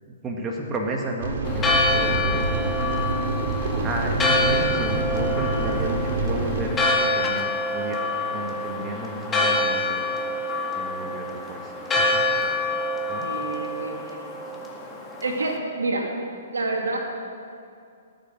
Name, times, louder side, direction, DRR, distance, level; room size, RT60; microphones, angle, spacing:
voice 1, 0.1-2.8 3.8-8.0 8.3-10.1 10.7-12.1 13.1-13.3, right 1 dB, 20° right, 0 dB, 1.9 m, -33 dB
sound 1, 1.2-6.7, right 2 dB, 55° right, 2.5 m, -26 dB
Church bell, 1.4-15.5, left 2 dB, 15° left, 2.0 m, -26 dB
voice 2, 13.2-14.2 15.2-16.1 16.5-17.0, right 3 dB, 80° right, 1 dB, 2.6 m, -28 dB
19.0 x 8.9 x 6.1 m, 2.4 s
figure-of-eight pair, 125°, 0 cm